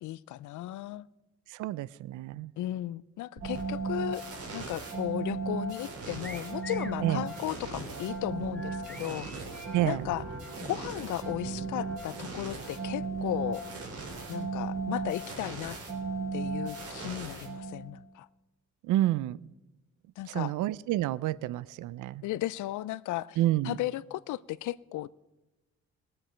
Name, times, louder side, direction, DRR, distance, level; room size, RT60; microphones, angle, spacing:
voice 1, 0.0-1.1 2.6-4.2 4.5-9.3 9.8-10.2 10.6-13.6 14.3-15.8 16.3-18.3 20.2-20.5 22.2-23.4 23.6-25.1, left 15 dB, 75° left, 21 dB, 0.5 m, -35 dB
voice 2, 1.5-2.5 7.0-7.3 9.7-10.0 18.8-19.4 20.3-22.2 23.4-23.8, right 15 dB, 85° right, 21 dB, 0.5 m, -29 dB
sound 1, 3.4-18.0, right 4 dB, 50° right, 4.2 m, -36 dB
sound 2, 6.2-7.0 8.5-10.0, equal, 5° left, 1.5 m, -46 dB
21.0 x 7.7 x 4.4 m, 1.1 s
cardioid pair, 90°, 30 cm